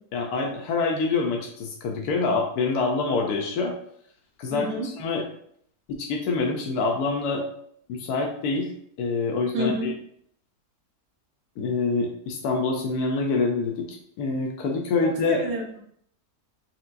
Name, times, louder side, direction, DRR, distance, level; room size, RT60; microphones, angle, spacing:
voice 1, 0.1-3.7 4.4-5.2 5.9-7.4 7.9-8.7 9.0-9.9 11.6-15.4, left 4 dB, 80° left, 1 dB, 1.1 m, -26 dB
voice 2, 4.5-4.9 9.5-9.9 15.0-15.8, right 1 dB, 55° right, 1 dB, 0.9 m, -29 dB
4.5 x 3.4 x 2.5 m, 0.66 s
omnidirectional pair, 1.7 m